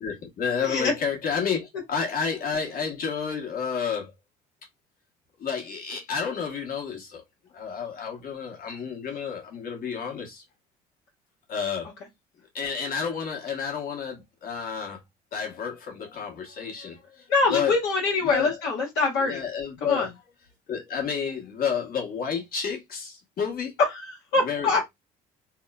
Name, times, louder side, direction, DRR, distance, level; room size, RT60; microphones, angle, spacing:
voice 1, 0.0-4.1 5.4-7.2 7.5-10.4 11.5-11.9 12.5-15.0 15.3-17.2 17.5-17.7 18.2-18.6 19.2-20.1 20.7-23.7 24.4-24.8, left 6 dB, 50° left, 1.1 m, -30 dB
voice 2, 0.5-0.9 17.3-19.4 19.8-20.1 23.8-24.8, left 3 dB, 75° left, 1.1 m, -24 dB
3.0 x 2.0 x 2.2 m
hypercardioid pair, 65°, 19 cm